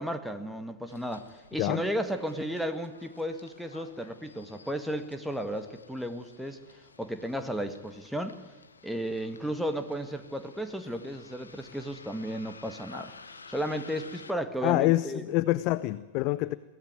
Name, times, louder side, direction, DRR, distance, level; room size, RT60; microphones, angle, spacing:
voice 1, 0.0-6.6 7.0-8.4 8.8-13.1 13.5-15.2, equal, ahead, 7 dB, 1.8 m, -34 dB
Bus, 0.9-14.3, left 4 dB, 75° left, 1.8 m, -52 dB
voice 2, 14.6-16.6, left 17 dB, 45° left, 17 dB, 0.7 m, -26 dB
22.5 x 17.0 x 9.4 m, 1.2 s
figure-of-eight pair, 90°, 0 cm